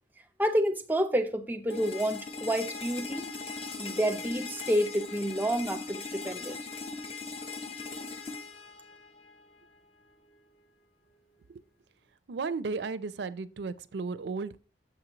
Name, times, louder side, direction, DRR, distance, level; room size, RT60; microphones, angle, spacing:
voice 1, 0.4-3.3 3.8-6.6, equal, 10° right, 0.5 m, -29 dB
sound 1, 1.7-9.7, left 4 dB, 35° left, 0.6 m, -40 dB
voice 2, 12.3-14.6, right 4 dB, 75° right, 0.4 m, -34 dB
7.0 x 6.0 x 2.9 m
head